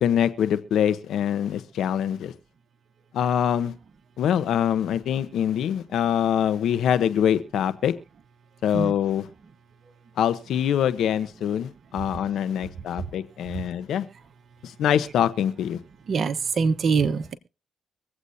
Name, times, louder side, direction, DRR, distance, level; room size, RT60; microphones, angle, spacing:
voice 1, 0.0-2.3 3.1-3.7 4.2-7.9 8.6-9.2 10.2-14.1 14.6-15.8, left 9 dB, 75° left, 13 dB, 1.0 m, -24 dB
voice 2, 16.1-17.3, right 5 dB, 55° right, 10 dB, 1.2 m, -25 dB
24.5 x 8.1 x 2.8 m, 0.31 s
cardioid pair, 70°, 0 cm